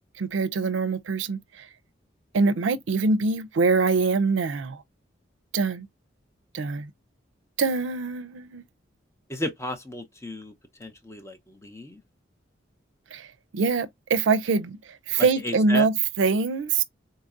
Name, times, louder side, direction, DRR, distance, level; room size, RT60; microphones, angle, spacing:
voice 1, 0.2-1.7 2.3-4.8 5.5-5.9 6.5-6.9 7.6-8.6 13.1-13.3 13.5-14.8 15.1-16.8, right 4 dB, 85° right, 0.4 m, -24 dB
voice 2, 9.3-10.5 10.8-12.0 15.2-15.9, left 1 dB, 15° left, 0.6 m, -34 dB
3.9 x 2.6 x 2.3 m
head